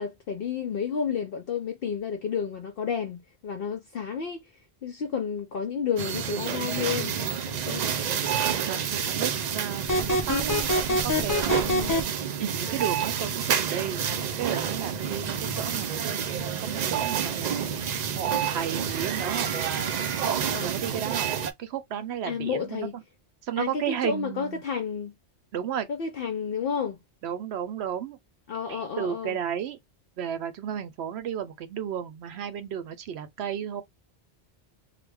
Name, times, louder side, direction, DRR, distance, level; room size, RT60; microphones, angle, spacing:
voice 1, 0.0-4.4 4.8-7.8 11.7-12.0 20.5-20.7 22.2-23.0 23.6-25.2 25.9-27.0 28.5-29.4, left 6 dB, 60° left, 0.8 m, -31 dB
sound 1, 6.0-21.5, right 8 dB, 55° right, 0.5 m, -29 dB
voice 2, 8.6-11.6 12.4-14.0 14.4-16.2 16.6-17.6 18.1-19.5 20.6-21.3 21.6-23.0 23.4-24.6 25.5-25.9 27.2-28.2 28.7-29.8 30.2-33.8, right 9 dB, 75° right, 0.8 m, -33 dB
sound 2, 9.9-12.0, left 1 dB, 30° left, 0.3 m, -24 dB
3.2 x 2.1 x 3.4 m
omnidirectional pair, 1.1 m